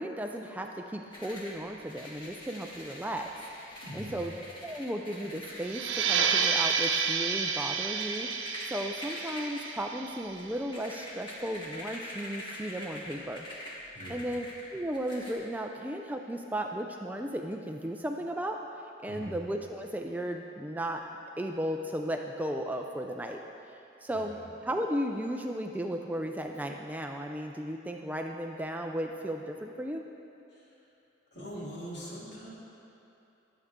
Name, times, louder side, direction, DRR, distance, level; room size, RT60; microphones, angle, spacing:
voice 1, 0.0-3.3 3.6-4.3 4.6-13.5 14.1-14.5 14.7-18.6 19.0-21.0 21.4-23.4 24.0-30.1, equal, 10° right, 3 dB, 0.4 m, -35 dB
sound 1, 1.1-15.3, left 1 dB, 25° left, 1.9 m, -45 dB
voice 2, 3.8-4.3 13.9-14.3 19.1-19.4 24.1-24.4 30.5-30.7 31.3-32.5, equal, 60° left, -6 dB, 3.0 m, -42 dB
sound 2, 5.6-10.9, right 6 dB, 90° right, 0.7 m, -30 dB
20.5 x 7.9 x 3.7 m, 2.8 s
head